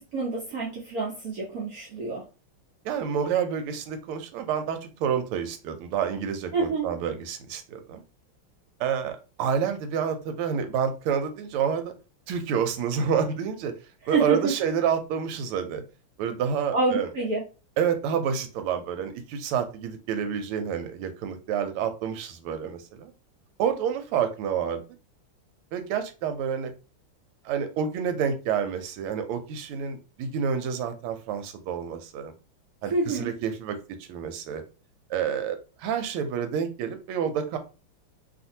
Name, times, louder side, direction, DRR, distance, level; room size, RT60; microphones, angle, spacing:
voice 1, 0.1-2.2 6.5-6.9 14.1-14.5 16.7-17.4 32.9-33.3, right 3 dB, 65° right, -3 dB, 0.9 m, -27 dB
voice 2, 2.8-8.0 8.8-11.9 12.3-13.7 14.1-15.8 16.2-17.1 17.8-23.1 23.6-24.8 25.7-26.7 27.4-32.3 32.8-34.6 35.1-37.6, right 7 dB, 90° right, 8 dB, 1.5 m, -28 dB
3.2 x 2.5 x 2.6 m, 0.32 s
omnidirectional pair, 2.3 m